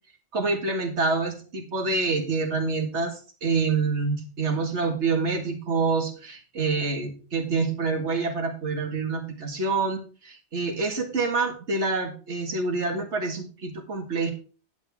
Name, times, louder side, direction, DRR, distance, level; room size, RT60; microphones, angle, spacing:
voice 1, 0.3-14.3, right 4 dB, 80° right, 5 dB, 2.1 m, -27 dB
10.5 x 9.0 x 3.5 m, 0.37 s
omnidirectional pair, 1.2 m